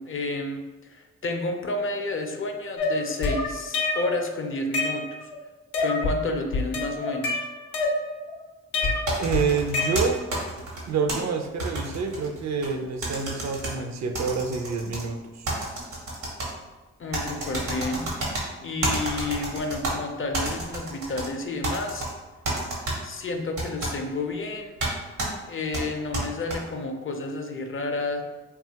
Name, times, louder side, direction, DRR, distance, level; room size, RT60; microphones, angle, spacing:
voice 1, 0.0-5.3 5.8-7.4 17.0-18.3 18.6-22.1 23.0-24.7 25.4-28.2, left 2 dB, 40° left, 4 dB, 0.5 m, -30 dB
sound 1, 2.8-4.2 4.5-5.4 5.7-6.2 6.5-8.3 8.7-10.4, left 2 dB, 90° left, 0.5 m, -27 dB
sound 2, 9.1-11.2 11.6-12.7 13.0-13.7 14.1-15.0 15.4-16.5 17.1-18.4 18.8-19.9 20.3-21.3 21.6-22.1 22.4-23.0 23.6-23.9 24.8-24.9 25.2-25.3 25.7-26.6, right 2 dB, 75° right, 0.9 m, -29 dB
voice 2, 9.2-10.3 10.9-15.5, right 5 dB, 60° right, 4 dB, 0.4 m, -27 dB
2.7 x 2.3 x 2.8 m, 1.2 s
supercardioid pair, 40°, 32 cm